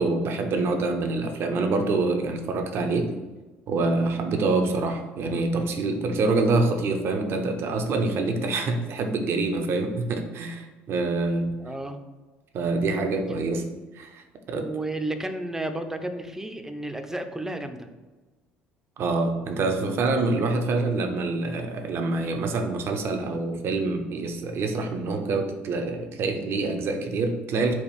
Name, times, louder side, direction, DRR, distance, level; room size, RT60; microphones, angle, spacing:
voice 1, 0.0-3.1 3.7-11.6 12.5-13.7 13.9-14.6 19.0-27.7, right 3 dB, 55° right, 5 dB, 0.7 m, -26 dB
voice 2, 11.6-12.0 12.7-12.8 14.5-17.9, right 1 dB, 10° right, 7 dB, 0.6 m, -32 dB
4.4 x 2.4 x 4.8 m, 1.2 s
hypercardioid pair, 60°, 5 cm